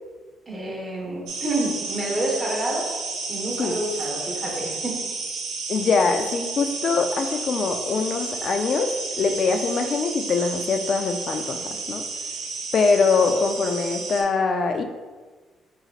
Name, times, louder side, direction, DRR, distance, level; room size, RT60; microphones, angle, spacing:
voice 1, 0.5-2.9 3.3-5.0, right 1 dB, 20° right, -3 dB, 1.3 m, -28 dB
sound 1, 1.3-14.2, right 3 dB, 85° right, 0.8 m, -32 dB
voice 2, 5.7-11.6 11.9-12.0 12.7-14.8, left 4 dB, 55° left, 6 dB, 0.3 m, -23 dB
4.0 x 3.9 x 2.4 m, 1.4 s
cardioid pair, 90°, 0 cm